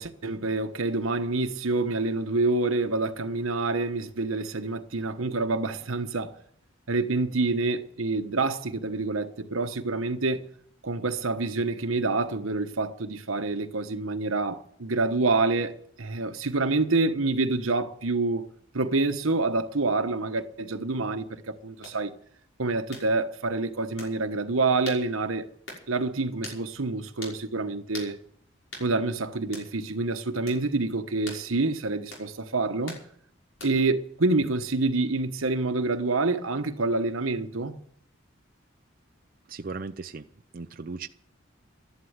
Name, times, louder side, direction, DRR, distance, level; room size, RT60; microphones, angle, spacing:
voice 1, 0.0-6.3 6.9-10.5 10.8-18.5 18.7-22.1 22.6-25.5 25.9-28.2 28.8-33.0 33.6-37.8, right 3 dB, 90° right, 1.2 m, -27 dB
sound 1, 21.8-22.0 22.9-23.1 24.0-24.1 24.9-25.0 25.7-25.9 26.4-26.6 27.2-27.4 27.9-28.1 28.7-28.9 29.5-29.7 30.5-30.6 31.3-31.4 32.1-32.3 32.9-33.1 33.6-33.9, left 2 dB, 75° left, 5.9 m, -41 dB
voice 2, 39.5-40.3 40.5-41.1, right 4 dB, 45° right, 0.6 m, -37 dB
13.5 x 11.5 x 8.0 m
head